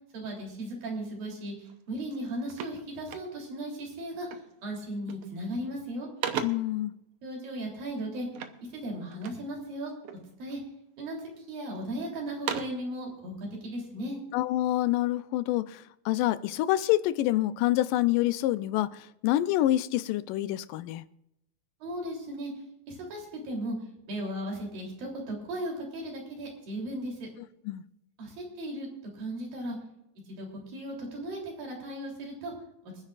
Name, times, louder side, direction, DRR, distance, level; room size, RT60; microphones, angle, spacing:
voice 1, 0.1-1.5 1.9-4.3 4.6-6.1 7.2-8.3 8.7-9.9 10.4-10.6 11.0-11.2 11.5-14.2 21.8-22.5 22.9-23.8 24.1-27.3 28.2-28.9 29.2-29.8 30.3-32.5, right 1 dB, 90° right, 5.2 m, -36 dB
sound 1, 1.6-1.8 2.1-3.7 4.3-4.6 4.9-5.4 5.8-6.8 8.3-9.5 10.0-10.7 11.2-11.8 12.2-12.9, right 8 dB, 70° right, 1.6 m, -38 dB
voice 2, 6.4-6.9 14.3-21.0 27.7-27.8, left 15 dB, 85° left, 2.2 m, -27 dB
28.0 x 10.0 x 2.5 m
omnidirectional pair, 3.9 m